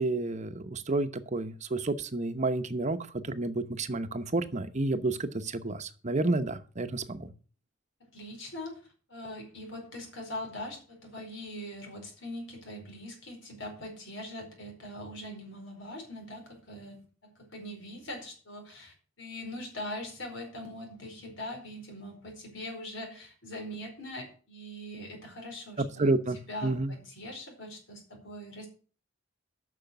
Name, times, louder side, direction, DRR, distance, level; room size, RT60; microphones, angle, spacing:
voice 1, 0.0-7.3 26.0-26.9, right 2 dB, 35° right, 10 dB, 0.9 m, -30 dB
voice 2, 8.0-8.8 9.1-26.1 26.5-28.7, left 1 dB, 70° left, 3 dB, 4.7 m, -42 dB
9.0 x 6.4 x 8.1 m, 0.38 s
head